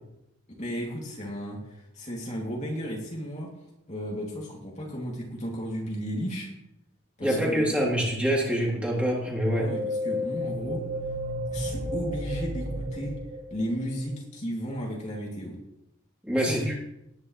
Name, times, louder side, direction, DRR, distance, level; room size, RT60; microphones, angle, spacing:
voice 1, 0.6-3.5 3.9-6.5 7.2-8.1 9.6-10.8 11.5-13.1 13.5-15.6 16.4-16.7, equal, 35° left, -2 dB, 2.6 m, -34 dB
voice 2, 7.2-9.7 16.3-16.7, equal, 5° right, -4 dB, 3.1 m, -25 dB
sound 1, 9.4-14.0, equal, 40° right, 4.8 m, -32 dB
18.5 x 10.0 x 3.2 m, 0.84 s
head